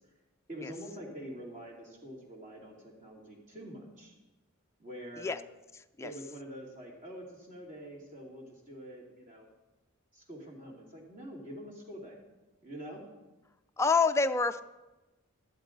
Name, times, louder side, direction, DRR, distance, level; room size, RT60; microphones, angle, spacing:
voice 1, 0.5-4.1 4.8-5.3 6.0-9.5 10.1-12.2 12.6-13.0, equal, 40° right, -2 dB, 2.9 m, -45 dB
voice 2, 5.7-6.1 13.8-14.6, left 4 dB, 15° left, 8 dB, 0.3 m, -27 dB
13.5 x 11.0 x 3.9 m, 1.1 s
head